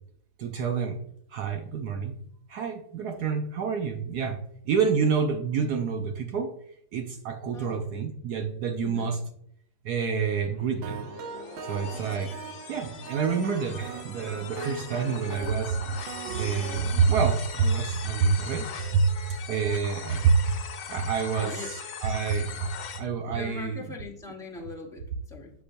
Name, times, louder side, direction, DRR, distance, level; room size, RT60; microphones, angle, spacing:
voice 1, 0.4-1.0 1.3-2.2 2.5-4.4 4.6-6.5 6.9-9.2 9.8-11.1 11.6-12.3 12.7-16.0 16.3-19.1 19.5-20.6 20.9-23.8, right 5 dB, 65° right, 6 dB, 1.1 m, -27 dB
voice 2, 7.5-7.9 8.8-9.2 21.4-21.7 23.3-25.5, left 3 dB, 5° left, -3 dB, 0.7 m, -41 dB
sound 1, 10.4-23.0, left 7 dB, 70° left, 1.4 m, -41 dB
sound 2, 10.8-16.8, right 7 dB, 90° right, 1.4 m, -40 dB
8.1 x 6.0 x 2.6 m, 0.69 s
omnidirectional pair, 2.1 m